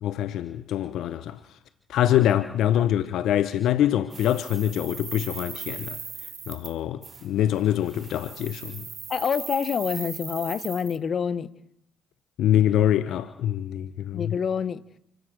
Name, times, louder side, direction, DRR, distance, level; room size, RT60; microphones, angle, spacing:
voice 1, 0.0-1.4 1.9-6.0 6.5-8.8 12.4-14.3, left 11 dB, 70° left, 1.0 m, -24 dB
sound 1, 4.1-6.7 7.0-7.3 7.8-11.0, right 5 dB, 45° right, 3.6 m, -39 dB
voice 2, 9.1-11.5 14.1-14.8, left 7 dB, 50° left, 1.4 m, -27 dB
29.5 x 15.5 x 6.6 m
hypercardioid pair, 50°, 0 cm